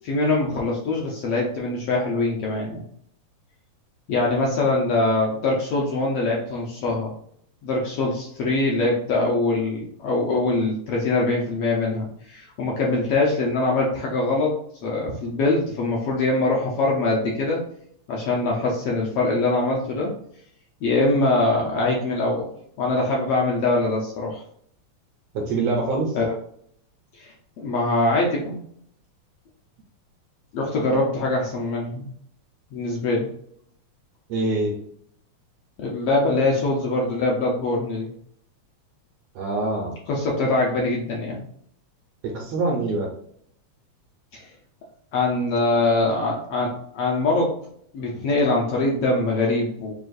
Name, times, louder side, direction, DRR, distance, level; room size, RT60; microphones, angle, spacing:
voice 1, 0.0-2.8 4.1-7.1 7.6-17.6 18.1-20.1 20.8-22.5 22.8-24.4 26.1-26.3 27.2-27.3 27.6-28.6 30.5-32.1 32.7-33.3 35.8-38.1 39.8-41.4 44.3-44.4 45.1-47.6 47.9-49.9, left 2 dB, 70° left, -2 dB, 1.5 m, -23 dB
voice 2, 25.3-26.2 34.3-34.7 39.3-39.9 42.2-43.1, right 3 dB, 75° right, -1 dB, 1.6 m, -24 dB
6.2 x 2.4 x 2.5 m, 0.66 s
omnidirectional pair, 3.3 m